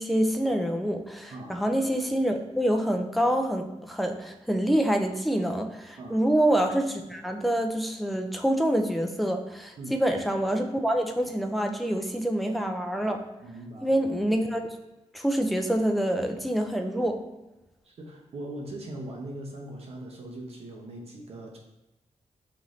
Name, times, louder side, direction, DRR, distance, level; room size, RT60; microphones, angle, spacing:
voice 1, 0.0-13.2 13.8-14.6 15.1-17.2, right 1 dB, ahead, 4 dB, 0.3 m, -26 dB
voice 2, 13.4-13.9 17.8-21.6, right 1 dB, 55° right, 0 dB, 0.7 m, -40 dB
5.5 x 2.5 x 3.0 m, 1.0 s
wide cardioid pair, 155°, 12 cm